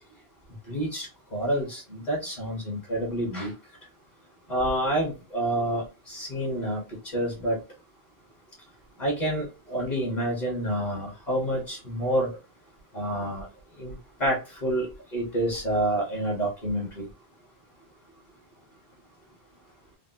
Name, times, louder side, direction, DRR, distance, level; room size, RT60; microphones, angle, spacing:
voice 1, 0.7-1.1 1.3-3.5 4.5-6.8 7.1-7.6 9.0-12.3 12.9-13.4 13.8-13.9 14.2-14.9 15.1-17.1, right 1 dB, 45° left, -2 dB, 1.3 m, -28 dB
3.3 x 2.2 x 2.6 m, 0.30 s
omnidirectional pair, 1.1 m